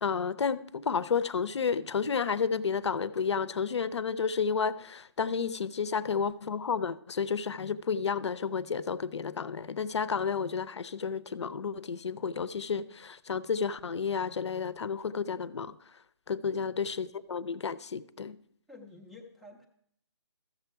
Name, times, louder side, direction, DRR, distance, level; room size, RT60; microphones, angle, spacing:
voice 1, 0.0-15.8 16.3-18.4, left 6 dB, 70° left, 0.6 m, -31 dB
voice 2, 16.4-16.9 18.7-19.7, left 2 dB, ahead, 0.4 m, -51 dB
13.5 x 6.9 x 4.6 m
hypercardioid pair, 165°, 15 cm